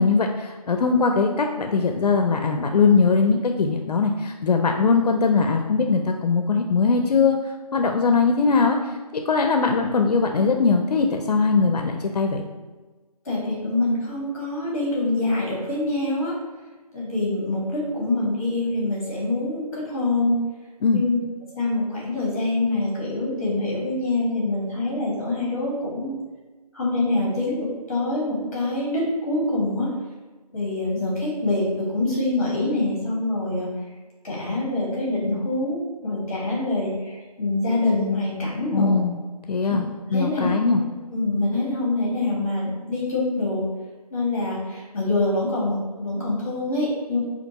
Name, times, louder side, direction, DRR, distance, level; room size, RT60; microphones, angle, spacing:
voice 1, 0.0-7.4 7.7-8.8 9.1-12.4 20.8-21.0 38.7-39.2 39.5-39.9 40.1-40.8, left 4 dB, 75° left, 4 dB, 0.4 m, -20 dB
voice 2, 13.2-16.4 16.9-20.4 20.9-21.2 21.5-26.2 26.7-29.9 30.5-33.7 34.2-38.9 39.7-39.8 40.1-40.8 41.1-43.6 44.1-47.2, left 2 dB, 25° left, -5 dB, 1.2 m, -25 dB
4.3 x 2.5 x 2.8 m, 1.3 s
figure-of-eight pair, 175°, 20 cm